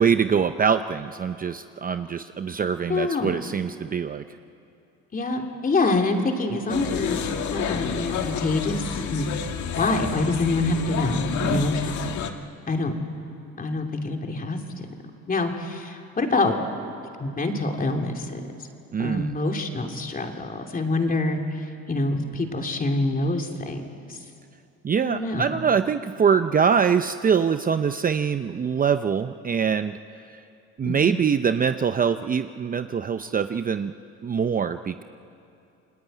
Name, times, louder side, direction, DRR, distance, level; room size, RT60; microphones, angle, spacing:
voice 1, 0.0-4.2 11.4-11.7 18.9-19.4 24.8-30.0 30.3-30.4 30.8-33.9 34.2-35.0, right 6 dB, 30° right, 10 dB, 0.6 m, -23 dB
voice 2, 2.9-3.3 5.1-7.2 7.5-9.3 9.8-11.7 12.7-13.0 13.6-14.6 15.3-16.6 17.2-18.4 19.0-21.4 21.9-23.9 25.0-25.4 30.8-31.2, left 2 dB, 30° left, 3 dB, 3.1 m, -26 dB
sound 1, 6.7-12.3, left 7 dB, 70° left, 1.8 m, -29 dB
29.0 x 20.5 x 9.2 m, 2.6 s
cardioid pair, 105°, 31 cm